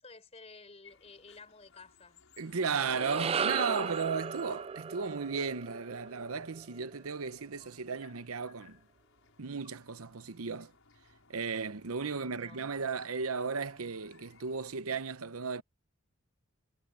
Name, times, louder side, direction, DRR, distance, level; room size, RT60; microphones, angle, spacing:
voice 1, 0.0-2.2 12.0-12.6, left 3 dB, 30° left, 4.1 m, -53 dB
sound 1, 0.8-14.8, left 5 dB, 70° left, 5.6 m, -63 dB
voice 2, 2.4-8.8 9.4-10.7 11.3-15.6, right 5 dB, 90° right, 0.9 m, -35 dB
sound 2, 2.6-7.1, right 6 dB, 25° right, 0.3 m, -36 dB
head